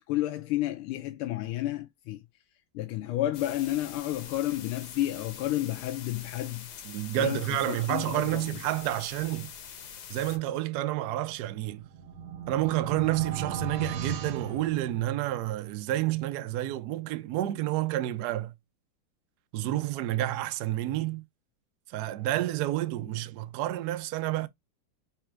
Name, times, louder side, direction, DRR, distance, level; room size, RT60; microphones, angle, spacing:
voice 1, 0.1-2.2 2.7-6.7 7.2-8.5, left 14 dB, 85° left, 1.5 m, -31 dB
sound 1, 3.3-10.4, left 7 dB, 60° left, 1.2 m, -45 dB
voice 2, 6.8-9.5 10.1-11.8 12.5-18.5 19.5-21.2 21.9-24.5, right 14 dB, 85° right, 0.8 m, -29 dB
sound 2, 11.6-15.4, right 6 dB, 70° right, 1.5 m, -36 dB
4.3 x 2.4 x 4.4 m
omnidirectional pair, 2.3 m